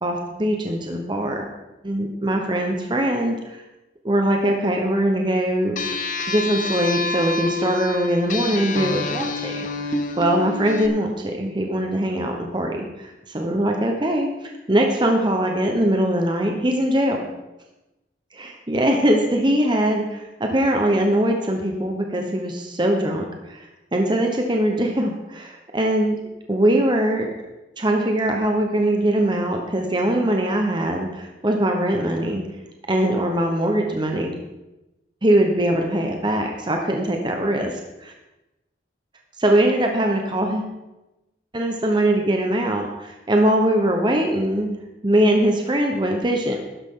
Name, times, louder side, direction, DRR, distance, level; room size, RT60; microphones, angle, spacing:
voice 1, 0.0-1.5 1.8-3.6 4.0-5.8 6.3-17.2 18.3-26.2 26.5-27.3 27.8-32.4 32.9-34.3 35.2-38.1 39.4-40.7 41.5-44.7 45.0-46.6, right 1 dB, 25° right, 2 dB, 1.1 m, -22 dB
sound 1, 5.8-10.9, left 3 dB, 45° left, 0.9 m, -27 dB
12.5 x 10.5 x 3.8 m, 0.99 s
head